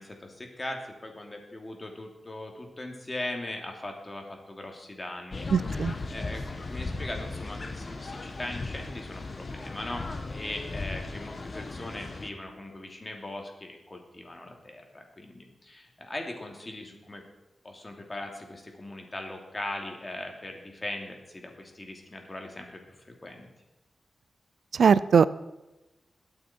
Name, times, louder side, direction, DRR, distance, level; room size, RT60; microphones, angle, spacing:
voice 1, 0.0-17.2 17.6-22.7 23.0-23.5, left 1 dB, 30° left, 2 dB, 2.9 m, -40 dB
sound 1, 5.3-12.3, left 3 dB, 45° left, 1.4 m, -37 dB
voice 2, 5.5-5.9 24.7-25.3, right 6 dB, 85° right, 17 dB, 0.4 m, -20 dB
21.0 x 8.8 x 4.5 m, 1.0 s
wide cardioid pair, 80°, 0 cm